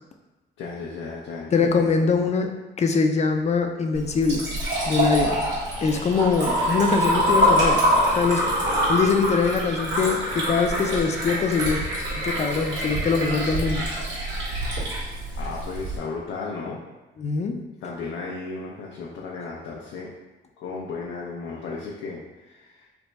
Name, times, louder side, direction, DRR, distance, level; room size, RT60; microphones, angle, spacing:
voice 1, 0.6-1.7 15.4-16.8 17.8-20.1 20.6-22.9, left 4 dB, 85° left, -4 dB, 0.6 m, -34 dB
voice 2, 1.5-2.5 2.8-4.4 4.9-5.4 5.8-7.8 8.2-11.8 12.2-13.8 14.8-14.9 17.2-17.5, left 5 dB, 35° left, 5 dB, 0.4 m, -23 dB
Liquid, 3.9-16.0, equal, 70° right, 1.4 m, -25 dB
3.4 x 2.2 x 4.0 m, 1.1 s
cardioid pair, 90°, 20 cm